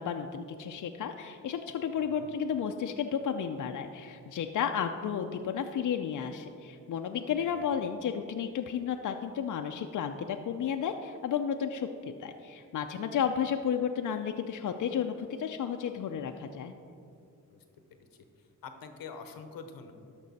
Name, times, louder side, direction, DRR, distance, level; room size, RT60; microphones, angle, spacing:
voice 1, 0.0-16.7, left 7 dB, 65° left, 5 dB, 0.5 m, -32 dB
voice 2, 2.0-2.3 7.5-7.6 17.5-17.6 18.0-18.1 18.6-19.9, left 5 dB, 85° left, 7 dB, 0.9 m, -45 dB
12.5 x 5.4 x 4.1 m, 2.4 s
cardioid pair, 70°, 33 cm